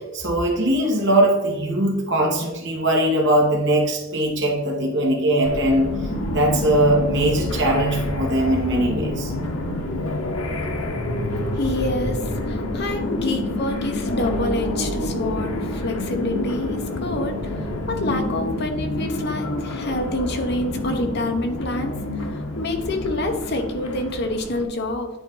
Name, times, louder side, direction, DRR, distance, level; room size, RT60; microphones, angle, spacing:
voice 1, 0.1-5.9 6.3-9.3, right 1 dB, 60° right, 0 dB, 1.8 m, -20 dB
sound 1, 5.4-24.6, left 1 dB, 90° left, 1.0 m, -28 dB
voice 2, 11.6-17.5 17.9-22.0 22.3-25.1, left 1 dB, 55° left, 4 dB, 1.1 m, -27 dB
9.8 x 4.2 x 3.9 m, 1.1 s
head